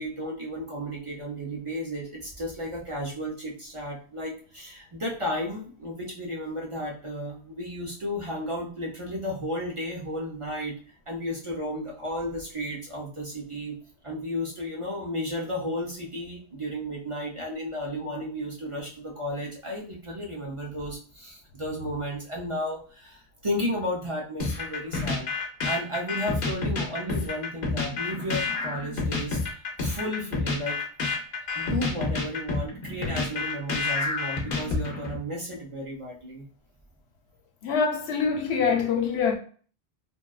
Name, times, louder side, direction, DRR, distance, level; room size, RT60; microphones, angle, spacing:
voice 1, 0.0-10.7 11.1-13.8 14.0-25.3 25.6-30.8 31.5-36.5, equal, 40° right, 0.5 m, -33 dB
sound 1, 24.4-35.2, left 3 dB, 60° left, 0.8 m, -29 dB
voice 2, 37.6-39.4, left 6 dB, 90° left, 0.9 m, -24 dB
2.8 x 2.2 x 2.3 m
omnidirectional pair, 1.1 m